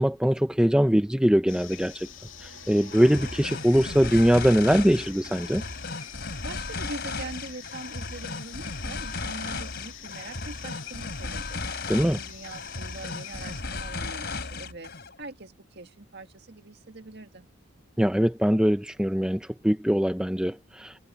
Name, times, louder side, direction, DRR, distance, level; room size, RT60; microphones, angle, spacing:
voice 1, 0.0-2.1 2.4-5.6 11.9-12.2 18.0-21.0, equal, 5° right, 0.6 m, -22 dB
sound 1, 1.5-13.6, left 10 dB, 70° left, 2.4 m, -46 dB
sound 2, 1.7-6.3, right 2 dB, 80° right, 2.6 m, -51 dB
sound 3, 2.9-15.1, left 3 dB, 55° left, 3.3 m, -35 dB
voice 2, 6.4-11.6 12.0-14.9 15.2-17.5, right 2 dB, 55° right, 2.0 m, -42 dB
head